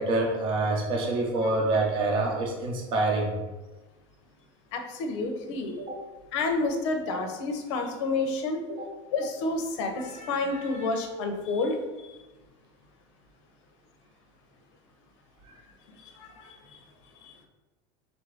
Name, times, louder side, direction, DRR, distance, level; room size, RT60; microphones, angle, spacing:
voice 1, 0.0-3.3 5.8-6.0 7.1-7.2 8.7-8.8 15.5-15.6, right 2 dB, 35° right, 0 dB, 0.7 m, -27 dB
voice 2, 4.7-5.8 6.3-8.6 9.1-12.2 16.0-16.8 17.2-17.3, left 3 dB, 80° left, 5 dB, 0.8 m, -30 dB
3.7 x 2.6 x 4.6 m, 1.2 s
cardioid pair, 165°, 15 cm